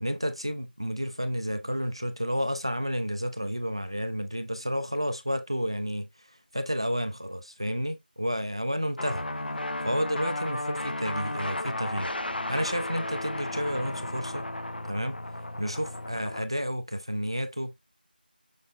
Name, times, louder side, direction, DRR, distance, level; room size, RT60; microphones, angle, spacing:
voice 1, 0.0-9.3 9.8-12.1 12.5-14.5 14.8-15.2 15.6-17.7, equal, 30° right, 0.3 m, -31 dB
sound 1, 9.0-16.5, left 1 dB, 65° left, 0.5 m, -34 dB
6.4 x 2.2 x 3.4 m
figure-of-eight pair, 175°, 5 cm